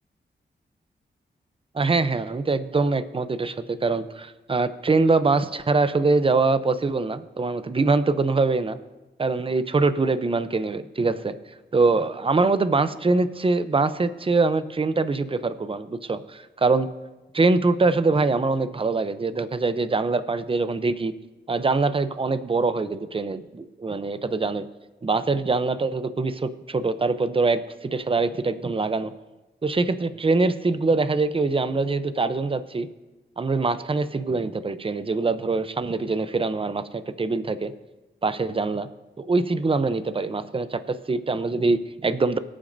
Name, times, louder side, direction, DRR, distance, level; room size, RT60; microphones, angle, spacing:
voice 1, 1.7-8.8 9.2-11.4 11.7-16.9 17.3-21.1 21.5-24.6 25.0-29.1 29.6-32.9 33.4-37.7 38.2-38.9 39.2-42.4, right 3 dB, 30° right, 12 dB, 0.6 m, -23 dB
23.5 x 8.7 x 2.7 m, 1.1 s
cardioid pair, 70°, 19 cm